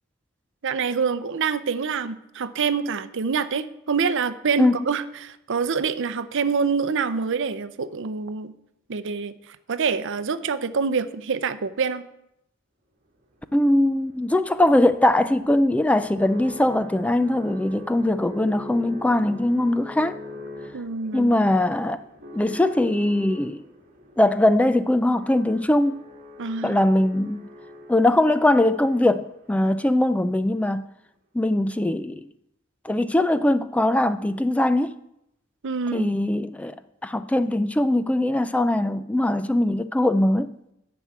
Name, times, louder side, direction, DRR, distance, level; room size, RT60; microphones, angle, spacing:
voice 1, 0.6-8.5 8.9-9.3 9.7-12.0 20.7-21.3 26.4-26.8 35.6-36.1, right 5 dB, 60° right, 0.6 m, -26 dB
sound 1, 13.4-29.6, left 1 dB, 40° right, 1.9 m, -43 dB
voice 2, 13.5-20.2 21.1-22.0 22.3-23.6 24.2-26.0 26.6-27.5 27.9-30.9 31.3-32.3 32.8-35.0 35.9-36.8 37.0-40.5, left 1 dB, 5° left, 0.3 m, -21 dB
11.0 x 6.1 x 8.2 m
head